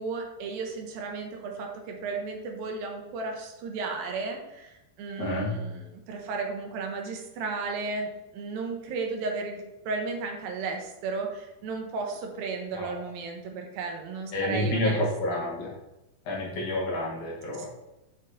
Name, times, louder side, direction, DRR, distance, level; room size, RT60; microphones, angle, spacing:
voice 1, 0.0-15.0 15.3-15.4 17.6-17.7, right 4 dB, 80° right, 2 dB, 2.6 m, -34 dB
voice 2, 5.2-5.5 12.7-13.0 14.3-15.7 16.3-17.7, left 1 dB, 65° left, -4 dB, 2.2 m, -29 dB
7.6 x 5.7 x 2.6 m, 0.95 s
omnidirectional pair, 4.3 m